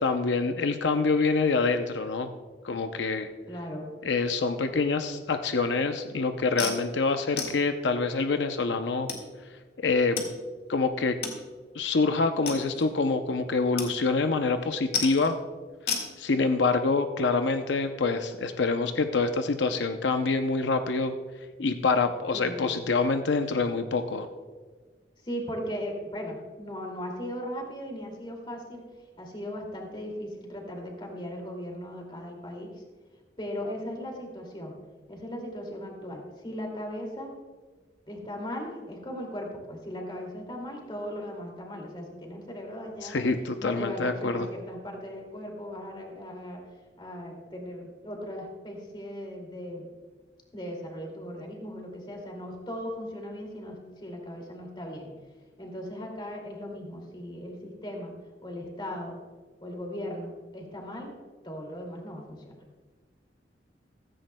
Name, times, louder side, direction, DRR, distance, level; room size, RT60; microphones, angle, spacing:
voice 1, 0.0-2.3 2.6-3.3 4.0-9.1 9.8-10.3 10.7-11.2 11.7-15.4 16.2-21.1 21.6-24.3 43.0-44.5, left 4 dB, 90° left, 7 dB, 0.6 m, -26 dB
voice 2, 3.5-3.9 22.3-22.7 25.2-28.9 29.2-32.8 33.4-34.8 35.1-37.4 38.1-43.3 43.6-46.6 47.0-49.9 50.5-55.1 55.6-58.1 58.4-59.1 59.6-61.1 61.4-62.5, equal, 25° left, 1 dB, 2.4 m, -38 dB
sound 1, 6.6-6.8 7.4-7.6 8.4-8.5 9.1-9.2 10.2-10.3 10.6-10.7 11.2-11.4 11.8-11.9 12.5-12.9 13.8-13.9 14.2-14.5 14.9-15.3 15.9-16.1, left 5 dB, 60° left, 1.8 m, -32 dB
15.5 x 14.5 x 2.2 m, 1.4 s
head